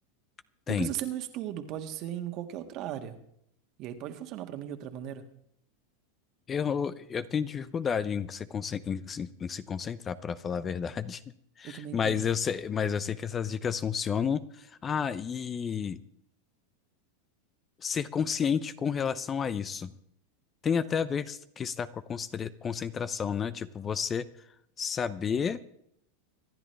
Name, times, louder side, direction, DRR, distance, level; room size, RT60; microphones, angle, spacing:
voice 1, 0.7-3.2 3.8-5.2 11.6-12.2, right 11 dB, 50° right, 7 dB, 1.8 m, -37 dB
voice 2, 6.5-11.2 11.6-16.0 17.8-19.9 20.6-24.3 24.8-25.6, left 7 dB, 25° left, 15 dB, 0.7 m, -31 dB
25.5 x 11.0 x 3.4 m, 0.72 s
hypercardioid pair, 105°, 0 cm